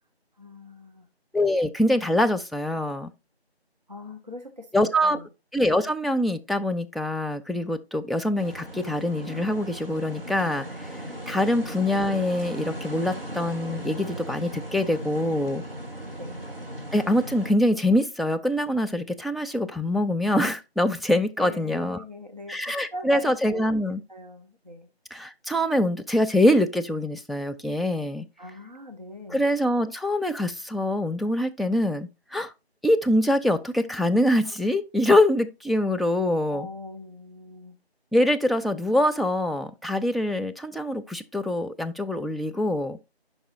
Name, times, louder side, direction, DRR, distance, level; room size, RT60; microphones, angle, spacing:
voice 1, 0.4-1.1 3.9-5.3 16.1-16.4 21.4-23.6 24.1-24.9 28.4-29.4 36.5-37.8, left 1 dB, 40° right, 0.7 m, -41 dB
voice 2, 1.3-3.1 4.7-5.2 5.5-15.6 16.9-22.0 22.5-24.0 25.1-28.3 29.3-32.5 32.8-36.7 38.1-43.0, left 1 dB, ahead, 0.3 m, -24 dB
sound 1, 8.3-17.5, equal, 60° right, 2.1 m, -37 dB
9.3 x 5.4 x 2.5 m
figure-of-eight pair, 175°, 32 cm